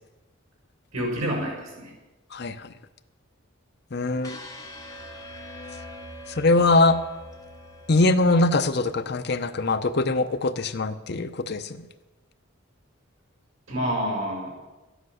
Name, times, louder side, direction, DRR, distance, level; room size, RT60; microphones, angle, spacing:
voice 1, 0.9-1.9 13.7-14.5, equal, 85° right, -2 dB, 5.8 m, -28 dB
voice 2, 2.3-2.7 3.9-4.4 6.3-7.0 7.9-11.9, left 2 dB, 50° left, 10 dB, 0.7 m, -22 dB
sound 1, 4.2-10.3, left 1 dB, 15° left, 1.4 m, -44 dB
13.5 x 10.0 x 6.4 m, 1.1 s
head